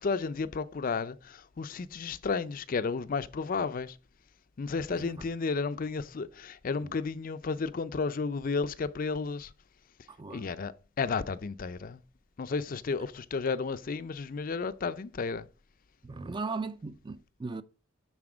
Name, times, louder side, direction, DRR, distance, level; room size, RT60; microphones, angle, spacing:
voice 1, 0.0-4.0 4.6-9.5 10.3-12.0 12.4-15.5, left 4 dB, 40° left, 0.4 m, -32 dB
voice 2, 4.9-5.3 10.1-10.5 16.0-17.6, right 3 dB, 20° right, 0.4 m, -38 dB
9.6 x 4.2 x 5.0 m
head